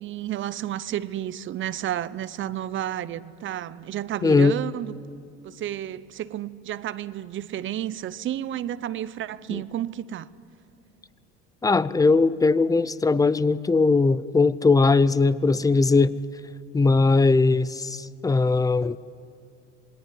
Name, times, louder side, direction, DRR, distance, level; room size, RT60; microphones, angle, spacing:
voice 1, 0.0-5.0 5.4-10.3, right 12 dB, 40° right, 0.8 m, -31 dB
voice 2, 4.2-4.6 9.5-9.6 11.6-16.1 16.7-19.0, left 3 dB, 10° left, 0.5 m, -20 dB
27.0 x 19.5 x 9.4 m
supercardioid pair, 115°, 29 cm